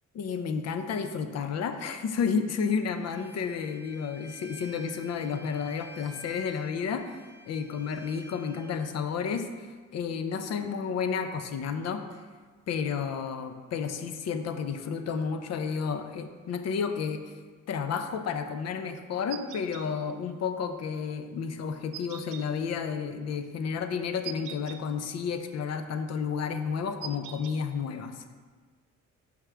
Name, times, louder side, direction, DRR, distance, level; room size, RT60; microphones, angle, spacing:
voice 1, 0.1-12.0 12.7-17.3 17.7-28.3, left 6 dB, 60° left, 8 dB, 0.5 m, -31 dB
Bowed string instrument, 2.9-8.9, left 1 dB, 15° left, 1.3 m, -50 dB
sound 1, 19.3-19.8 21.9-22.4 24.2-24.8 27.0-27.6, right 11 dB, 90° right, 0.5 m, -41 dB
6.1 x 4.9 x 3.3 m, 1.5 s
cardioid pair, 90°, 30 cm